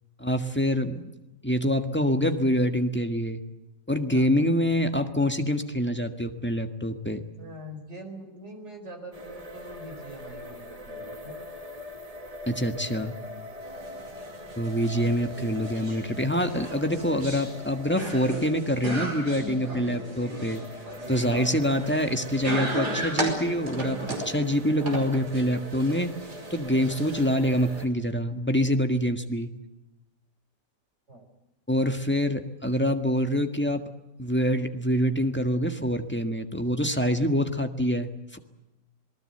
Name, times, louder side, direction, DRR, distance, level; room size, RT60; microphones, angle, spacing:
voice 1, 0.2-1.1 1.4-3.4 3.9-7.2 12.5-13.1 14.6-20.6 21.1-26.1 26.5-29.5 31.7-33.8 34.2-38.4, equal, 5° left, 6 dB, 1.5 m, -25 dB
voice 2, 7.4-11.4 31.1-31.2, right 1 dB, 40° right, 5 dB, 4.7 m, -43 dB
sound 1, 9.1-27.9, equal, 20° right, 1.8 m, -42 dB
sound 2, 13.6-27.8, right 2 dB, 65° right, 5.8 m, -36 dB
27.5 x 19.5 x 8.0 m, 0.95 s
omnidirectional pair, 1.8 m